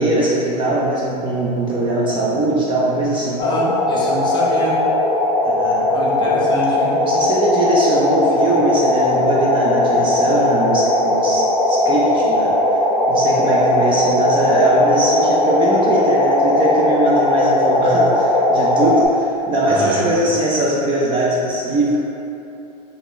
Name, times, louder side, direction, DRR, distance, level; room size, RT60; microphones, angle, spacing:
voice 1, 0.0-3.4 5.5-5.9 7.0-12.5 13.1-22.0, right 1 dB, 25° right, -5 dB, 0.5 m, -20 dB
sound 1, 3.4-19.1, left 1 dB, 65° left, 0.7 m, -18 dB
voice 2, 3.4-4.7 5.9-6.9 19.7-20.3, equal, 20° left, -5 dB, 0.8 m, -26 dB
5.0 x 2.3 x 3.0 m, 2.8 s
hypercardioid pair, 115°, 21 cm